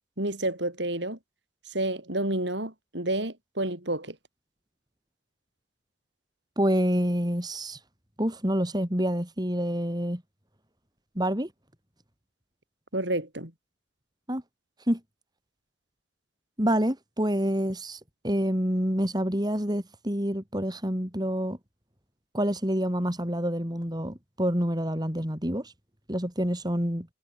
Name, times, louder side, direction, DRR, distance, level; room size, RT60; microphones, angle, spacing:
voice 1, 0.2-1.2 1.7-4.2 12.9-13.5, right 1 dB, 65° right, 8.0 m, -30 dB
voice 2, 6.6-7.8 8.2-10.2 11.2-11.5 14.3-14.4 14.9-15.0 16.6-21.6 22.3-25.7 26.1-27.1, equal, 20° right, 5.8 m, -27 dB
head